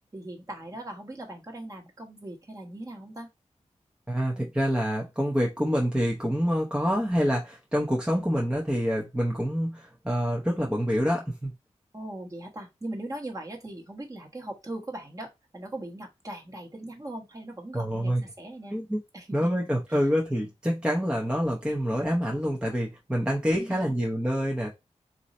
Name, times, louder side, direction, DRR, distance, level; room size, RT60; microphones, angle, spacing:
voice 1, 0.1-3.3 11.9-18.7 19.1-20.0 23.6-23.9, right 1 dB, 30° right, 1.3 m, -40 dB
voice 2, 4.1-11.5 17.7-18.2 18.7-19.0 19.3-24.7, equal, 10° right, 0.8 m, -26 dB
3.9 x 2.7 x 4.2 m
wide cardioid pair, 120°, 12 cm